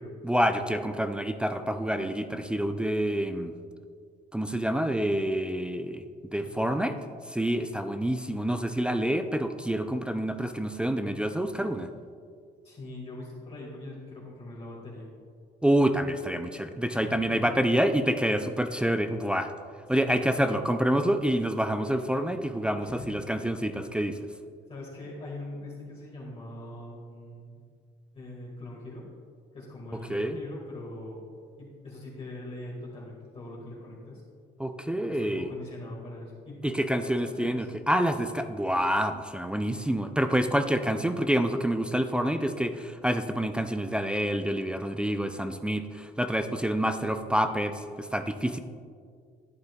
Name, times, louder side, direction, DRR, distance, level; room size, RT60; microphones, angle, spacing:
voice 1, 0.2-3.5 4.3-7.0 7.3-11.9 15.6-19.5 19.9-24.3 30.1-30.4 34.6-35.5 36.6-48.6, right 1 dB, 5° right, 7 dB, 0.3 m, -27 dB
voice 2, 6.4-6.9 12.6-15.1 16.9-17.9 20.0-20.3 22.8-23.1 24.7-27.6 28.1-29.1 29.5-31.2 31.6-34.2 35.0-37.7, left 1 dB, 35° left, -5 dB, 1.9 m, -42 dB
11.5 x 8.6 x 2.3 m, 2.1 s
cardioid pair, 110°, 17 cm